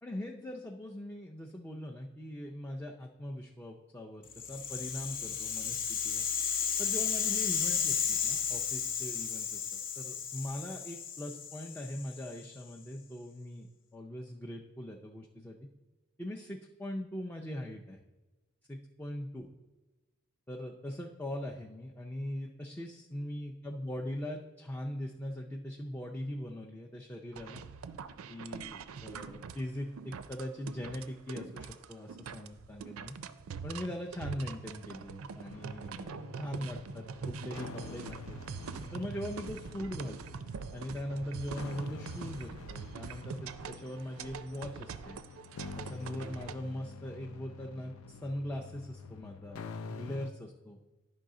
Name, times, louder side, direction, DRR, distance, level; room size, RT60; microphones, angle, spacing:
voice 1, 0.0-6.2 6.8-9.6 10.0-15.6 16.2-18.0 18.7-19.5 20.5-27.6 28.3-33.1 33.6-36.1 36.3-38.4 38.9-40.2 40.7-45.2 45.8-49.6 49.9-50.8, left 1 dB, 10° left, 1 dB, 0.4 m, -41 dB
Rattle (instrument), 4.3-12.5, left 7 dB, 40° left, 0.8 m, -33 dB
sound 1, 27.3-46.5, right 5 dB, 85° right, 0.4 m, -44 dB
sound 2, 35.5-50.3, left 4 dB, 90° left, 0.5 m, -47 dB
10.5 x 5.4 x 3.7 m, 1.2 s
head